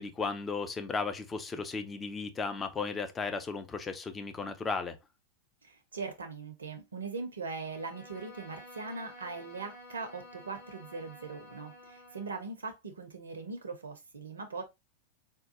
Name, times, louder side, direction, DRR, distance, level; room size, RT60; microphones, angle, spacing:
voice 1, 0.0-5.0, left 4 dB, 20° left, 0.4 m, -35 dB
voice 2, 5.6-14.6, right 4 dB, 70° right, 0.5 m, -40 dB
Bowed string instrument, 7.6-12.5, left 1 dB, 50° left, 1.2 m, -51 dB
3.6 x 2.3 x 2.6 m
figure-of-eight pair, 90°, 0 cm